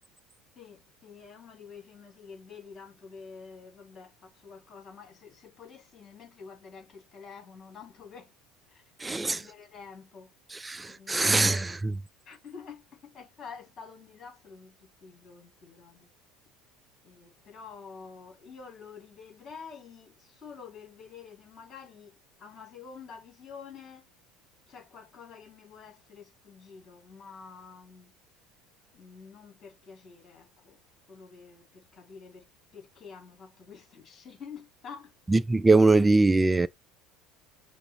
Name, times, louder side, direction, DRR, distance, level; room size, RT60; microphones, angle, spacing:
voice 1, 0.6-8.3 8.7-10.3 10.9-11.6 12.3-14.7 15.0-16.1 17.0-22.1 22.4-24.0 24.7-28.1 28.9-30.8 31.1-32.5 32.7-35.1, left 6 dB, 35° left, 2.2 m, -48 dB
voice 2, 9.0-9.4 10.6-12.0 35.3-36.7, right 3 dB, 15° right, 0.3 m, -22 dB
5.3 x 2.0 x 4.2 m
hypercardioid pair, 70°, 0 cm